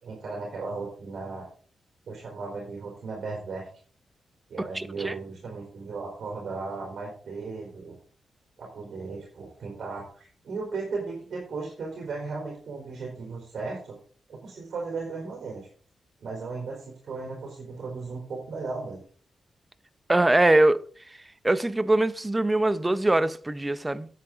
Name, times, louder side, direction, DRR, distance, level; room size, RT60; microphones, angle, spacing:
voice 1, 0.0-1.5 2.1-3.7 4.5-8.0 8.6-14.0 14.3-15.7 16.2-19.0, right 4 dB, 70° right, 3.9 m, -36 dB
voice 2, 4.7-5.1 20.1-20.8 21.4-24.1, right 2 dB, 15° right, 0.7 m, -22 dB
9.7 x 8.4 x 3.9 m
cardioid pair, 95°, 0 cm